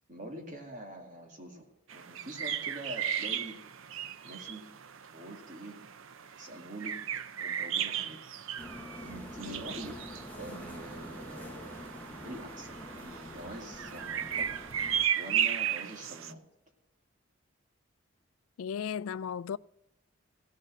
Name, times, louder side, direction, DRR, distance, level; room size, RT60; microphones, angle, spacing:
voice 1, 0.1-1.7 1.9-3.6 4.2-4.7 5.1-5.8 6.4-8.2 9.0-10.0 10.3-14.5 14.8-16.4, right 1 dB, 35° right, 2.3 m, -45 dB
sound 1, 1.9-16.3, right 9 dB, 75° right, 0.6 m, -36 dB
sound 2, 8.6-15.1, left 1 dB, 10° left, 0.9 m, -46 dB
voice 2, 18.6-19.6, left 7 dB, 85° left, 0.3 m, -36 dB
16.5 x 6.6 x 6.2 m
head